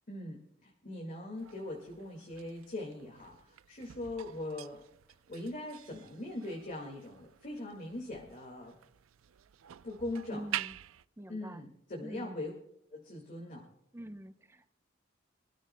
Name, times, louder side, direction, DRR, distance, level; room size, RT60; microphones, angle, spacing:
voice 1, 0.1-4.8 5.3-8.7 9.8-10.4 11.3-12.5 12.9-13.7, left 2 dB, 40° left, 0 dB, 1.9 m, -41 dB
sound 1, 1.4-11.1, right 12 dB, 90° right, 0.4 m, -47 dB
voice 2, 10.3-10.8 11.2-11.7 12.0-12.4 13.9-14.7, right 1 dB, 15° right, 9 dB, 0.7 m, -45 dB
25.0 x 13.0 x 2.2 m, 0.79 s
head